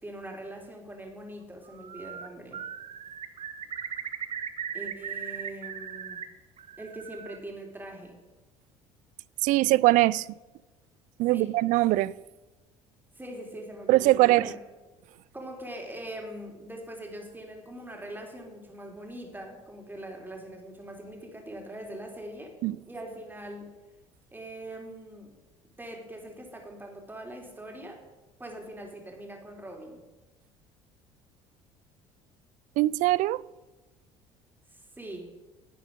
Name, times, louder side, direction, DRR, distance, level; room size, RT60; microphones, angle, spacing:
voice 1, 0.0-2.6 4.7-6.2 6.8-8.2 11.3-11.6 13.2-14.6 15.3-22.6 22.9-23.7 24.3-25.3 25.8-28.0 28.4-30.0 34.7-35.3, right 1 dB, 15° right, 3.4 m, -42 dB
Bird, 1.7-2.3 2.5-6.2 6.6-7.4, right 8 dB, 45° right, 1.1 m, -38 dB
voice 2, 9.4-10.3 11.2-12.1 13.9-14.5 22.6-22.8 32.8-33.4, right 18 dB, 60° right, 0.4 m, -22 dB
11.0 x 9.2 x 5.3 m
hypercardioid pair, 60°, 15 cm